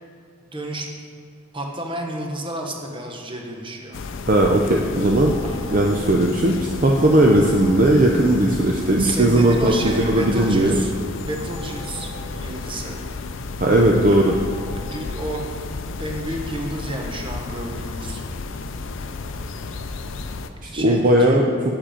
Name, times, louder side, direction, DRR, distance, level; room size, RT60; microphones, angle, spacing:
voice 1, 0.5-0.9 1.5-4.0 5.4-5.8 9.0-13.0 14.8-15.5 16.0-18.2 20.7-21.4, right 1 dB, 25° right, 1 dB, 0.9 m, -30 dB
sound 1, 3.9-20.5, left 3 dB, 65° left, 0.5 m, -32 dB
voice 2, 4.3-5.4 5.7-10.8 13.6-14.3 20.6-21.5, right 1 dB, 40° right, 0 dB, 0.6 m, -17 dB
sound 2, 5.3-6.0 7.0-7.8 9.8-10.5 11.5-12.3 14.3-15.0, right 2 dB, 90° right, 1.8 m, -42 dB
7.4 x 7.4 x 5.0 m, 2.3 s
head